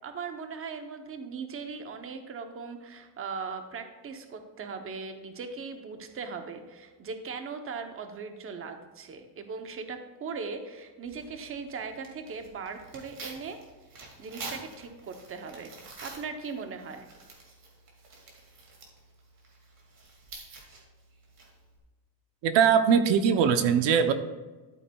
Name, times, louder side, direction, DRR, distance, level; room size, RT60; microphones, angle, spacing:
voice 1, 0.0-13.6 14.2-17.1, right 5 dB, 30° right, 6 dB, 0.8 m, -39 dB
Tearing, 11.0-21.8, right 3 dB, 50° right, 2.3 m, -48 dB
voice 2, 22.4-24.1, right 7 dB, 90° right, 9 dB, 0.8 m, -21 dB
12.0 x 8.6 x 2.3 m, 1.2 s
cardioid pair, 165°, 42 cm